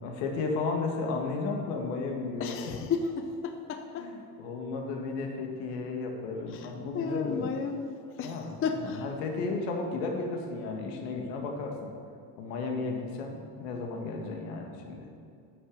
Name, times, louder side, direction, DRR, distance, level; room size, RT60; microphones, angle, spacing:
voice 1, 0.0-2.7 4.0-7.5 8.2-11.9 12.4-15.1, left 3 dB, 75° left, 2 dB, 1.9 m, -34 dB
voice 2, 2.4-4.1 6.5-7.9 8.2-9.1 9.4-9.6, left 5 dB, 25° left, 6 dB, 0.6 m, -33 dB
9.4 x 6.1 x 6.2 m, 2.5 s
supercardioid pair, 115°, 48 cm